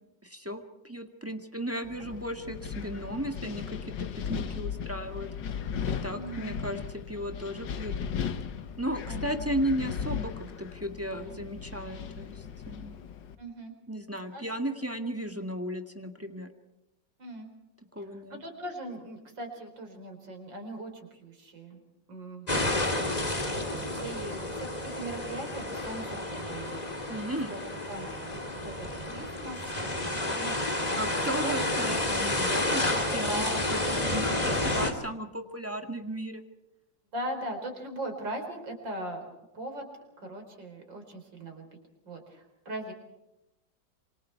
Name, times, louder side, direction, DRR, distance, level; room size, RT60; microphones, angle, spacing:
voice 1, 0.2-5.3 6.0-8.0 8.8-10.3 10.6-13.0 13.9-16.5 17.9-18.4 27.1-27.6 30.9-33.5 33.7-36.4, right 1 dB, 10° right, 4 dB, 1.8 m, -35 dB
Wind, 1.8-13.3, left 7 dB, 80° left, 1.9 m, -37 dB
voice 2, 6.1-6.5 9.1-9.5 13.4-13.7 14.3-14.5 17.2-17.5 18.3-21.8 22.1-26.9 27.5-27.6 27.9-28.7 29.0-31.5 33.3-33.6 34.0-34.5 37.1-39.9 40.2-41.7 42.0-42.9, right 1 dB, 85° right, 4 dB, 5.1 m, -40 dB
sound 1, 22.5-34.9, left 1 dB, 20° left, 2.5 m, -30 dB
27.5 x 25.5 x 4.6 m, 0.92 s
omnidirectional pair, 2.0 m